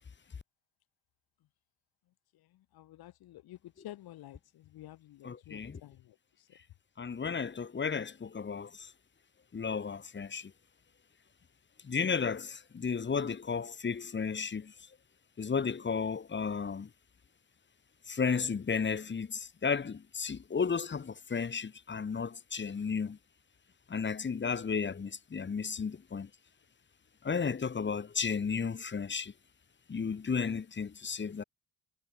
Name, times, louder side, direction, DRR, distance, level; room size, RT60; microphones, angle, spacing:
voice 1, 2.5-6.1, left 14 dB, 75° left, 5.1 m, -50 dB
voice 2, 5.2-5.8 7.0-8.9 9.5-10.5 11.8-14.7 15.4-16.9 18.1-23.2 23.9-26.3 27.2-29.3 29.9-31.4, left 5 dB, 30° left, 2.0 m, -33 dB
cardioid pair, 90°, 38 cm